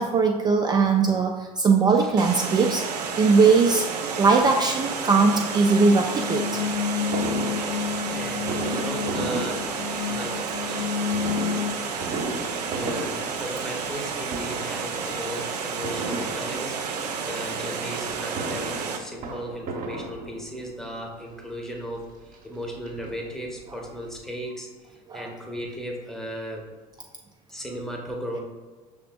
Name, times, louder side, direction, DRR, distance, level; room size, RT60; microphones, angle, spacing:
voice 1, 0.0-2.8 3.2-3.9 4.2-6.6 25.1-25.3, right 4 dB, 20° right, 2 dB, 0.3 m, -20 dB
Water, 2.2-19.0, right 5 dB, 80° right, 0.5 m, -31 dB
sound 1, 5.7-11.7, left 8 dB, 75° left, 0.5 m, -30 dB
Fireworks, 7.1-10.3 11.1-14.0 14.3-14.9 15.8-16.9 18.1-20.7 21.5-21.6 21.9-22.0 22.3-23.6 23.9-24.0 24.2-24.3, right 2 dB, 40° right, 0.8 m, -35 dB
voice 2, 8.1-9.7 10.1-10.9 12.7-16.8 17.2-26.7 27.5-28.4, equal, ahead, 0 dB, 0.8 m, -36 dB
5.7 x 3.5 x 2.2 m, 1.4 s
hypercardioid pair, 75°, 20 cm